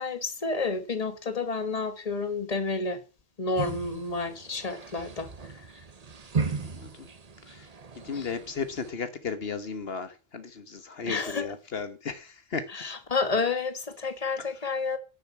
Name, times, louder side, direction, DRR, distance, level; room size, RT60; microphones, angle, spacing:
voice 1, 0.0-3.0 3.4-5.7 8.1-8.3 11.1-11.5 12.7-15.0, left 4 dB, 35° left, 1.6 m, -30 dB
sound 1, 3.5-8.9, right 5 dB, 40° right, 1.0 m, -36 dB
voice 2, 6.5-7.1 7.5-7.6 8.0-12.6, left 5 dB, 70° left, 1.4 m, -35 dB
11.0 x 6.9 x 8.4 m
omnidirectional pair, 1.0 m